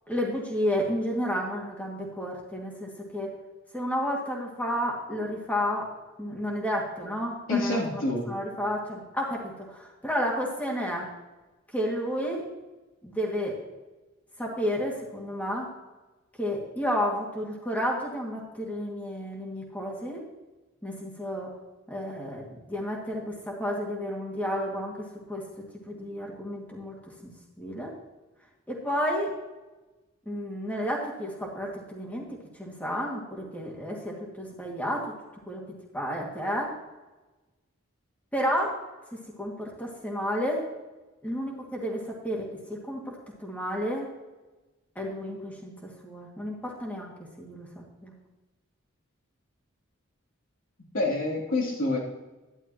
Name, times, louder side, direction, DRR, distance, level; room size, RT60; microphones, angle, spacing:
voice 1, 0.1-3.3 3.7-5.9 6.2-8.0 8.3-11.1 11.7-12.4 13.0-13.5 14.4-15.7 16.4-20.2 20.8-21.5 21.9-25.5 25.9-27.3 27.6-27.9 28.7-29.3 30.3-35.1 35.5-35.6 35.9-36.7 38.3-38.7 39.4-40.6 41.2-44.1 45.0-47.1 47.4-48.1, equal, 10° left, -3 dB, 2.3 m, -31 dB
voice 2, 7.5-8.3 50.9-52.0, left 2 dB, 65° left, -4 dB, 3.3 m, -27 dB
12.5 x 11.0 x 3.1 m, 1.1 s
head